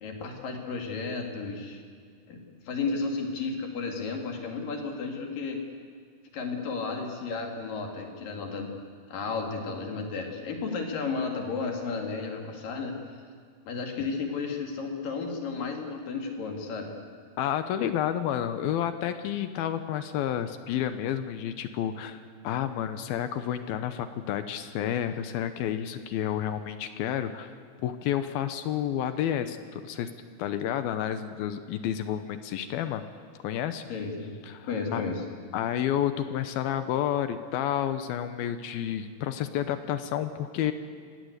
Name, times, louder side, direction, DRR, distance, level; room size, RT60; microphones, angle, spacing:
voice 1, 0.0-1.8 2.3-2.4 2.7-5.6 6.3-8.7 9.1-13.0 13.6-16.9 33.9-34.3 34.6-35.2, left 4 dB, 60° left, 2 dB, 3.9 m, -33 dB
voice 2, 17.4-22.2 22.4-27.5 27.8-30.1 30.4-33.0 33.4-33.8 34.5-35.0 35.5-40.7, left 10 dB, 75° left, 10 dB, 2.6 m, -30 dB
25.5 x 18.0 x 8.2 m, 2.1 s
omnidirectional pair, 4.7 m